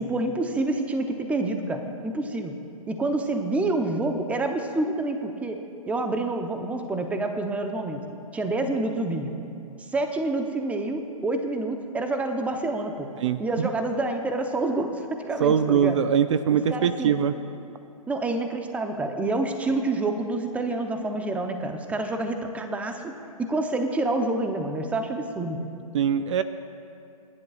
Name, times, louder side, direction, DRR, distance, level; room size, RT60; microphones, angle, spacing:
voice 1, 0.0-2.6 2.9-5.6 5.9-8.0 8.3-9.3 9.9-13.1 13.4-16.0 16.5-17.2 18.1-25.7, right 2 dB, 5° right, 5 dB, 0.8 m, -28 dB
voice 2, 15.4-17.4 25.9-26.4, right 8 dB, 55° right, 11 dB, 0.5 m, -22 dB
28.5 x 11.0 x 2.5 m, 2.5 s
hypercardioid pair, 130°, 19 cm